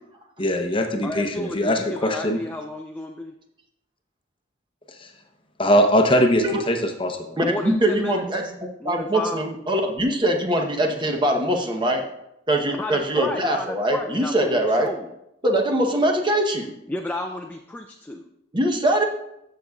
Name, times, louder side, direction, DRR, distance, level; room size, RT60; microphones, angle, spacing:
voice 1, 0.4-2.4 5.0-5.1 5.6-7.2, equal, 25° left, 4 dB, 0.8 m, -21 dB
voice 2, 1.0-3.3 7.4-8.2 8.8-9.4 12.7-15.1 16.9-18.3, left 1 dB, 10° left, 3 dB, 0.3 m, -32 dB
voice 3, 7.4-12.0 12.5-14.9 15.4-16.7 18.5-19.0, right 1 dB, 25° right, 2 dB, 0.9 m, -22 dB
13.5 x 6.6 x 2.4 m, 0.83 s
head